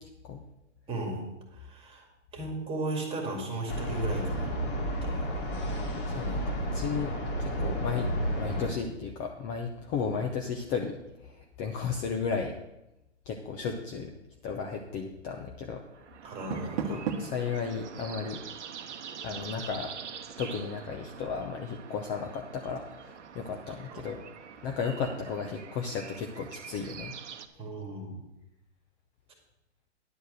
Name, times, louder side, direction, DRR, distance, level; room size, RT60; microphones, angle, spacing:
voice 1, 0.9-1.2 1.5-2.1 2.3-4.5 5.0-5.2 16.2-17.0 23.7-24.1 27.6-28.2, right 2 dB, 15° right, 1 dB, 2.2 m, -36 dB
sound 1, 3.7-8.7, equal, 45° left, 2.6 m, -31 dB
voice 2, 6.1-7.1 7.4-12.6 13.3-14.1 14.4-15.8 16.9-18.4 19.2-19.9 20.4-24.2 24.6-27.1, left 6 dB, 20° left, 3 dB, 0.7 m, -34 dB
sound 2, 15.8-27.5, right 7 dB, 75° right, 0.9 m, -45 dB
Door, 16.2-17.5, right 6 dB, 40° right, 1.1 m, -34 dB
10.5 x 4.6 x 7.9 m, 0.91 s
hypercardioid pair, 130°, 36 cm